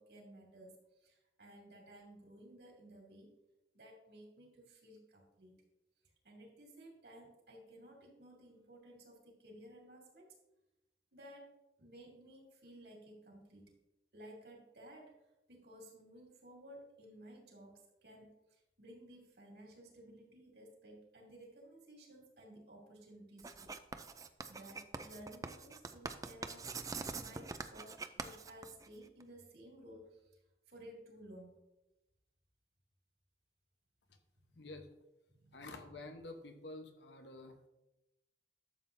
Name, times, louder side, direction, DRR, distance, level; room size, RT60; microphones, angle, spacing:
voice 1, 0.0-3.3 3.7-5.5 6.2-10.3 11.1-11.5 11.8-13.7 14.1-15.1 15.5-23.7 24.5-26.7 27.2-30.4 30.7-31.6 35.3-35.7, right 1 dB, 70° right, 0 dB, 2.7 m, -56 dB
Writing, 23.4-29.2, right 4 dB, 20° right, 0.4 m, -44 dB
voice 2, 34.5-34.9 35.5-37.7, left 2 dB, 85° left, 6 dB, 1.1 m, -49 dB
11.5 x 7.4 x 2.7 m, 0.95 s
head